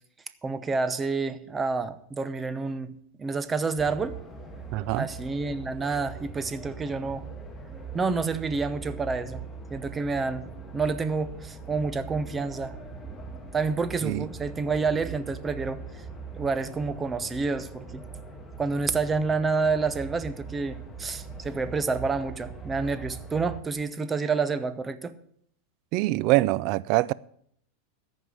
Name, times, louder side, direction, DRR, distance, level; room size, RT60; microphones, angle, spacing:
voice 1, 0.4-4.2 4.9-7.3 7.9-12.8 13.5-15.8 16.4-18.0 18.6-25.1, right 4 dB, 15° right, 0.8 m, -29 dB
sound 1, 3.7-23.6, right 4 dB, 10° left, 1.4 m, -41 dB
voice 2, 4.7-5.1 14.0-14.3 25.9-27.1, right 19 dB, 50° right, 0.4 m, -24 dB
14.0 x 5.4 x 7.6 m
supercardioid pair, 125°, 0 cm